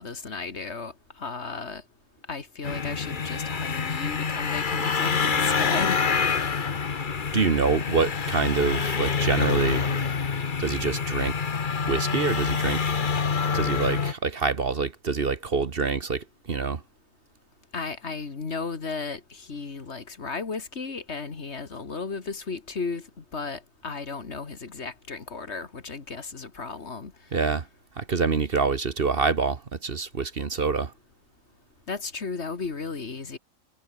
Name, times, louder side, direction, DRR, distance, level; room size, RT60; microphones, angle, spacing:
voice 1, 0.0-1.8 2.3-6.6 17.7-27.1 31.9-33.4, left 4 dB, 55° left, 2.2 m, -34 dB
sound 1, 2.6-14.1, left 5 dB, 40° left, 1.2 m, -26 dB
voice 2, 7.3-10.1 10.6-11.4 11.8-13.0 13.5-16.8 27.3-27.7 28.0-30.9, right 4 dB, 45° right, 1.4 m, -26 dB
omnidirectional pair, 1.4 m